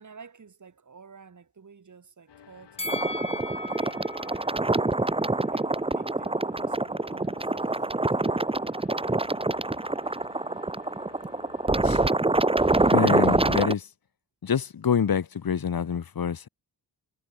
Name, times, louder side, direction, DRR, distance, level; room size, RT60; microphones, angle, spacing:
voice 1, 0.0-3.4 3.7-4.0 5.5-8.4, right 5 dB, 45° right, 6.9 m, -51 dB
sound 1, 2.3-13.7, left 8 dB, 80° left, 7.9 m, -53 dB
Bell, 2.8-6.0 6.3-6.4, left 2 dB, 15° left, 2.5 m, -38 dB
sound 2, 2.9-13.7, right 2 dB, 15° right, 1.5 m, -25 dB
voice 2, 12.9-13.9 14.4-16.5, left 7 dB, 60° left, 2.8 m, -26 dB
wide cardioid pair, 130°, 41 cm